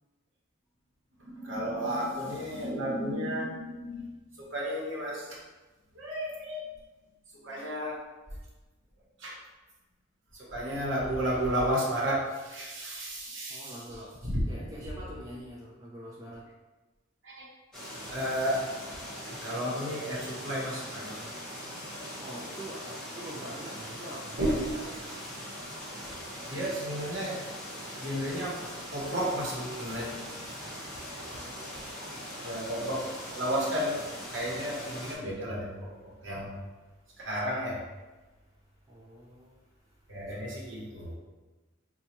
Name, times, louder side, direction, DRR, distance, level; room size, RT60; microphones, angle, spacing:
voice 1, 1.2-4.1 4.4-5.4 5.9-6.7 7.4-8.0 9.2-9.4 10.3-13.7 14.2-14.4 17.2-17.5 18.1-18.7 18.9-19.0 19.4-21.3 24.4-24.7 26.5-27.5 27.9-30.2 30.5-30.6 31.7-31.8 32.4-34.0 34.3-36.6 37.2-37.8 40.1-41.1, equal, 60° right, -4 dB, 0.9 m, -33 dB
voice 2, 13.5-14.1 14.5-16.4 22.2-24.9 31.3-32.2 38.9-39.5, right 1 dB, 15° right, -5 dB, 0.3 m, -44 dB
sound 1, 17.7-35.2, equal, 5° left, 0.7 m, -41 dB
4.0 x 2.2 x 2.9 m, 1.2 s
head